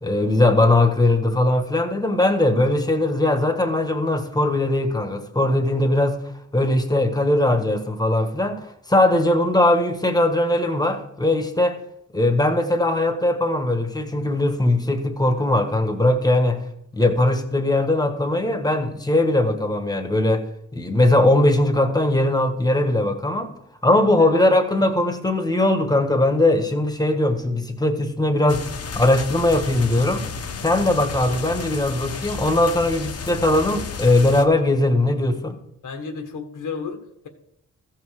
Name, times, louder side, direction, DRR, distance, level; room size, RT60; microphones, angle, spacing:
voice 1, 0.0-6.2 6.5-11.8 12.1-16.6 16.9-20.4 20.7-23.5 23.8-28.6 28.9-30.2 30.6-35.5, left 1 dB, 10° left, 1.4 m, -20 dB
sound 1, 28.5-34.5, left 5 dB, 50° left, 1.1 m, -32 dB
voice 2, 35.8-37.3, left 5 dB, 85° left, 1.6 m, -33 dB
14.5 x 5.6 x 6.5 m
wide cardioid pair, 105°, 31 cm